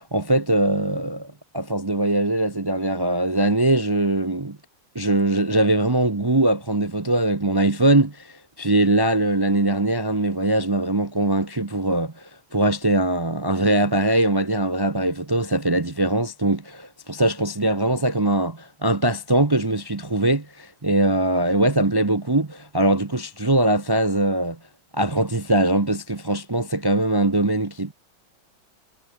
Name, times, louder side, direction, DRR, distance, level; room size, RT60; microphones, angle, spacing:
voice 1, 0.0-4.6 4.9-24.6 24.9-27.9, right 1 dB, 40° right, 0.3 m, -21 dB
omnidirectional pair, 2.0 m